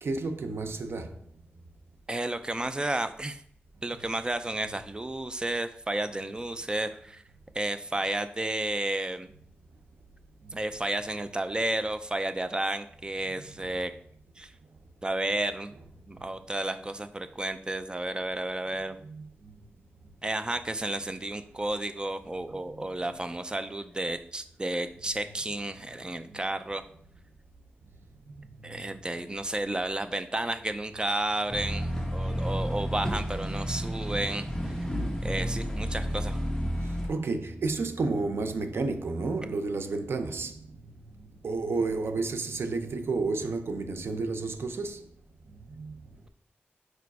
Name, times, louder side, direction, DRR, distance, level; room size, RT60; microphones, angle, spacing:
voice 1, 0.0-1.1 13.6-13.7 19.0-19.3 22.7-22.8 28.3-28.4 28.7-28.8 36.8-40.6 41.4-45.0 45.7-46.0, right 3 dB, 80° right, 0.6 m, -31 dB
voice 2, 2.1-3.4 3.8-7.2 7.5-9.3 10.5-13.9 14.4-14.5 15.0-15.7 16.1-19.0 20.2-26.8 28.6-34.9 35.2-36.4, right 1 dB, 20° right, 0.5 m, -32 dB
sound 1, 31.5-37.1, equal, 15° left, 1.1 m, -31 dB
4.9 x 4.5 x 4.7 m
wide cardioid pair, 105°, 4 cm